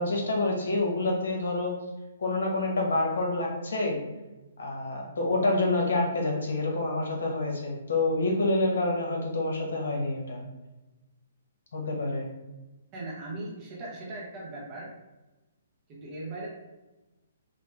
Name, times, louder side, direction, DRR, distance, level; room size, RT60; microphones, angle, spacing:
voice 1, 0.0-1.8 2.2-4.0 4.6-10.4 11.7-12.3, left 2 dB, 85° left, 0 dB, 1.0 m, -27 dB
voice 2, 12.9-14.9 15.9-16.5, right 2 dB, 20° right, -5 dB, 0.7 m, -38 dB
3.4 x 2.0 x 3.2 m, 1.1 s
hypercardioid pair, 180°, 0 cm